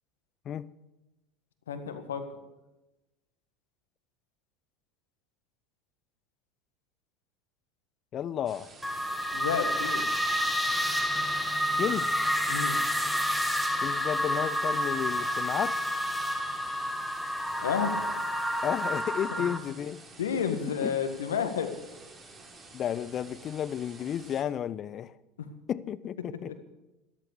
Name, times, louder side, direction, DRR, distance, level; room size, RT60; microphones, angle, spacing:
voice 1, 1.7-2.2 9.3-10.1 12.5-12.8 17.6-18.1 19.3-19.5 20.2-21.7, left 7 dB, 70° left, 1.7 m, -31 dB
voice 2, 8.1-8.7 11.7-12.3 13.8-15.7 18.6-20.0 20.8-21.0 22.7-25.1 25.7-26.6, left 9 dB, 35° left, 0.6 m, -32 dB
sound 1, 8.5-24.4, right 3 dB, 25° right, 3.4 m, -51 dB
sound 2, 8.8-19.6, equal, ahead, 1.5 m, -29 dB
sound 3, 10.6-19.6, right 1 dB, 45° right, 2.7 m, -50 dB
13.5 x 13.5 x 6.8 m
figure-of-eight pair, 75°, 0 cm